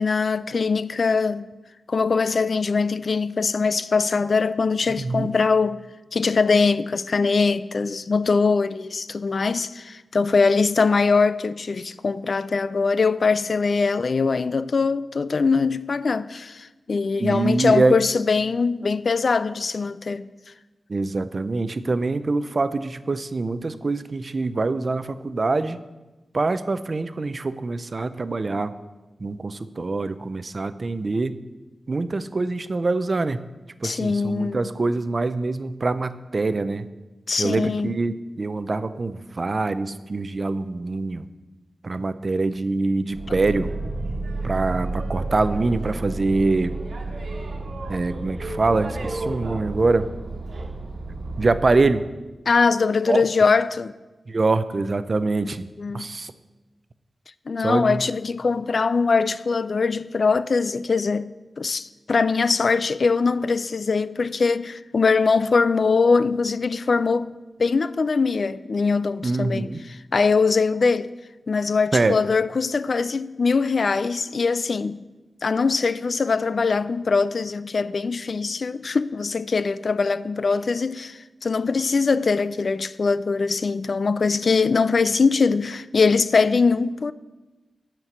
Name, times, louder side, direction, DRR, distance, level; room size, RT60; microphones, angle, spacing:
voice 1, 0.0-1.5 1.9-5.8 6.1-20.3 33.8-34.6 37.3-38.0 52.5-53.9 55.8-56.1 57.5-61.3 61.6-71.1 71.5-75.0 75.4-87.1, left 4 dB, 60° left, 0.3 m, -22 dB
voice 2, 5.0-5.3 17.2-18.0 20.9-25.8 26.3-28.7 29.2-31.4 31.9-33.4 33.8-36.9 37.4-41.3 41.8-43.7 44.4-46.7 47.9-50.1 51.4-52.0 53.1-53.2 54.3-55.7 55.9-56.3 57.6-58.0 69.2-69.8 71.9-72.1, right 3 dB, 45° right, 0.5 m, -24 dB
Boat Water vehicle, 43.1-51.9, right 2 dB, 65° right, 1.3 m, -31 dB
11.0 x 4.5 x 7.9 m
wide cardioid pair, 95°, 0 cm